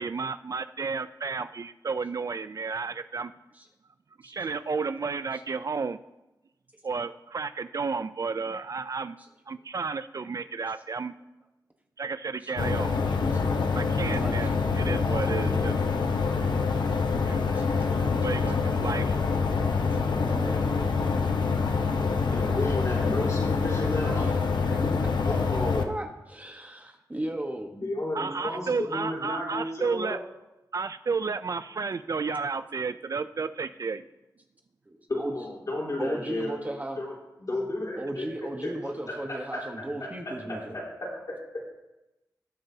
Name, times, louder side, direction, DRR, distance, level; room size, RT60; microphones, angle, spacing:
voice 1, 0.0-3.3 4.2-6.0 6.8-9.2 9.5-11.1 12.0-13.0 13.7-15.7 17.3-17.5 18.2-19.2 28.1-30.2 30.7-34.1, right 4 dB, 50° right, 12 dB, 0.4 m, -32 dB
sound 1, 12.6-25.8, left 4 dB, 85° left, 0.9 m, -26 dB
voice 2, 14.0-14.6 14.8-15.2 15.4-16.0 17.5-17.7 20.0-20.6 24.2-24.9 25.9-27.7 34.9-35.3 36.0-37.0 38.0-40.8, right 1 dB, 20° right, 3 dB, 1.1 m, -36 dB
voice 3, 22.3-24.6 25.2-25.9 27.7-30.2 35.1-36.5 37.0-37.1 37.4-38.3 38.6-38.8 39.1-39.9 40.3-41.1, left 1 dB, 50° left, -4 dB, 3.8 m, -33 dB
19.0 x 7.7 x 2.8 m, 0.98 s
wide cardioid pair, 95°, 7 cm